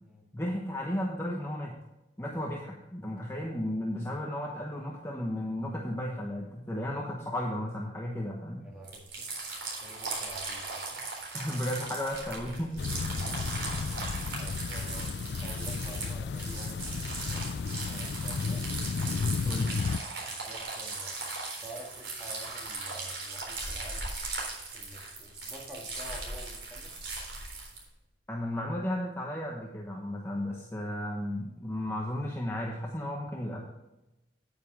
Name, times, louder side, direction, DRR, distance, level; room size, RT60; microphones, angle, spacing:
voice 1, 0.3-1.7 2.2-8.6 11.3-12.8 19.4-19.7 28.3-33.6, left 1 dB, 15° left, -2 dB, 1.1 m, -34 dB
voice 2, 8.6-9.3 9.8-11.0 14.4-15.1 15.4-18.6 19.2-19.6 20.3-21.1 21.6-24.1 24.7-27.0, right 1 dB, 5° right, -2 dB, 2.3 m, -48 dB
sound 1, 8.8-27.8, right 3 dB, 85° right, 3.9 m, -38 dB
sound 2, 12.8-20.0, left 5 dB, 65° left, 0.4 m, -33 dB
9.4 x 9.4 x 3.6 m, 0.97 s
head